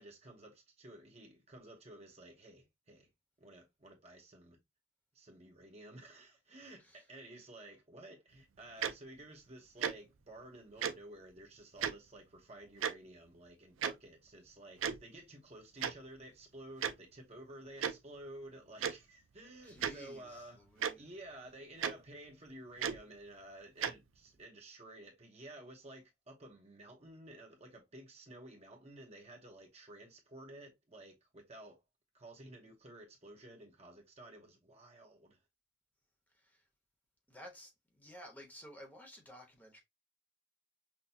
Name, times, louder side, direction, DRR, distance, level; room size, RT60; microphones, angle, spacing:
voice 1, 0.0-3.1 3.4-4.6 5.1-31.8 32.1-35.4, right 1 dB, 30° right, 0.9 m, -53 dB
Tick-tock, 8.8-8.9 9.8-9.9 10.8-10.9 11.8-11.9 12.8-12.9 13.8-13.9 14.8-15.0 15.8-15.9 16.8-16.9 17.8-17.9 18.8-18.9 19.8-19.9 20.8-20.9 21.8-21.9 22.8-23.0 23.8-23.9, right 7 dB, 90° right, 0.5 m, -33 dB
voice 2, 19.6-21.0 36.3-36.6 37.3-39.8, equal, 10° left, 0.9 m, -54 dB
5.9 x 2.2 x 2.7 m
head